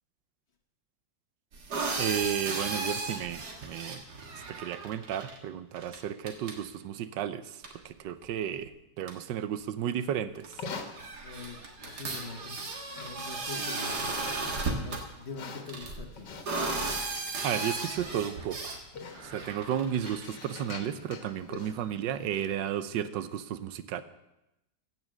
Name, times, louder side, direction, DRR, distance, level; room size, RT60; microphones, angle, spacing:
sound 1, 1.5-5.4 5.8-6.0 6.3-6.6 7.6-7.7 8.7-8.8 9.1-9.2 10.4-10.5 10.8-15.0 15.7-18.8 19.1-20.3, right 3 dB, 65° right, 2.2 m, -35 dB
voice 1, 2.0-4.0 4.5-8.7 9.0-10.6 17.4-18.8 19.2-24.0, right 9 dB, 85° right, 13 dB, 1.4 m, -33 dB
Livestock farm animals working animals, 10.4-22.6, left 4 dB, 75° left, 1.9 m, -47 dB
voice 2, 11.2-12.6 12.9-14.0 14.7-16.3, left 4 dB, 40° left, 5 dB, 1.3 m, -44 dB
15.5 x 6.2 x 7.4 m, 0.92 s
omnidirectional pair, 1.9 m